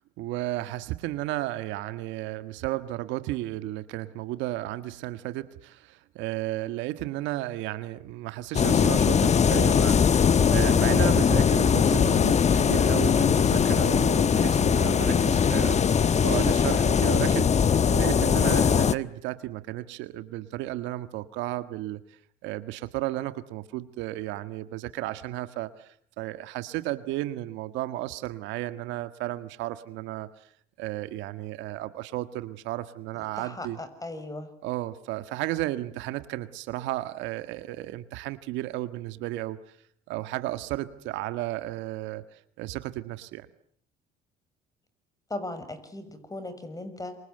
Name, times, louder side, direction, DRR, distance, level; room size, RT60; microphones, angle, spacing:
voice 1, 0.2-17.6 17.9-30.5 30.8-33.8 34.6-39.6 40.1-43.5, right 16 dB, 80° right, 11 dB, 1.7 m, -33 dB
sound 1, 8.5-18.9, left 7 dB, 35° left, 1.2 m, -21 dB
voice 2, 33.4-34.5 45.3-47.2, left 2 dB, 20° left, 11 dB, 6.5 m, -37 dB
27.5 x 25.0 x 8.0 m, 0.65 s
supercardioid pair, 80°, 19 cm